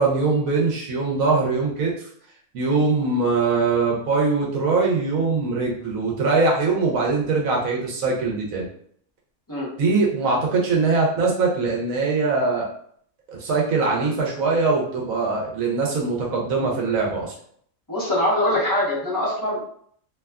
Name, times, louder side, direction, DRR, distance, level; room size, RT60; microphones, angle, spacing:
voice 1, 0.0-2.1 2.5-8.7 9.8-12.7 13.3-17.3, right 4 dB, 75° right, -2 dB, 1.1 m, -22 dB
voice 2, 17.9-19.6, left 1 dB, 15° left, -9 dB, 0.8 m, -23 dB
2.8 x 2.3 x 2.2 m, 0.62 s
omnidirectional pair, 1.5 m